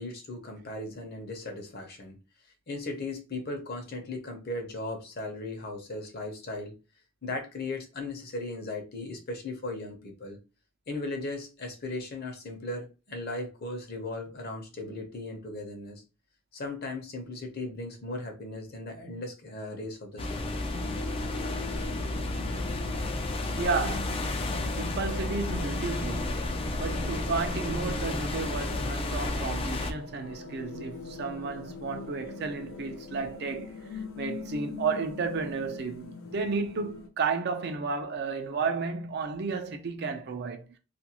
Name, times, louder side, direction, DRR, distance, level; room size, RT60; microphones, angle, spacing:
voice 1, 0.0-2.2 2.7-6.7 7.2-10.4 10.9-16.0 16.5-20.5, left 2 dB, 50° left, 0.7 m, -37 dB
sound 1, 20.2-29.9, left 2 dB, 30° left, 0.3 m, -32 dB
sound 2, 20.7-37.1, left 4 dB, 85° left, 0.5 m, -42 dB
voice 2, 23.6-24.3 24.8-26.5 26.8-33.7 34.2-40.6, right 4 dB, 55° right, 0.5 m, -32 dB
2.5 x 2.2 x 2.8 m
head